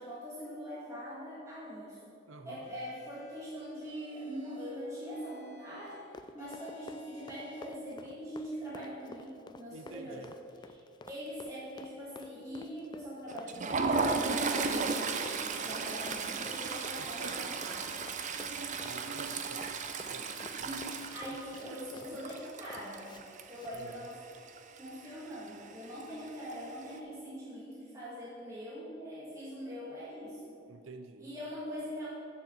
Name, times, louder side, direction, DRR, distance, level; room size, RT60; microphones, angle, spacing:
voice 1, 0.0-2.1 2.5-10.3 10.6-10.8 11.1-18.0 20.6-23.2 23.5-24.2 24.8-30.6 31.2-32.1, equal, 15° right, -8 dB, 1.7 m, -43 dB
voice 2, 2.3-2.7 9.7-10.4 17.0-17.5 18.8-19.8 20.0-20.8 21.3-21.4 21.7-21.8 23.7-24.1 30.7-31.3, right 3 dB, 75° right, 8 dB, 0.6 m, -49 dB
sound 1, 2.6-3.4 3.8-4.7 5.1-6.0 6.4-7.7, equal, 40° left, 2.4 m, -56 dB
Run, 5.9-23.2 23.5-23.7, left 3 dB, 20° left, 0.3 m, -51 dB
Toilet flush, 13.3-24.1 24.3-24.6 24.9-25.1 26.0-26.5, right 4 dB, 40° right, 0.6 m, -35 dB
7.1 x 6.6 x 7.9 m, 2.6 s
head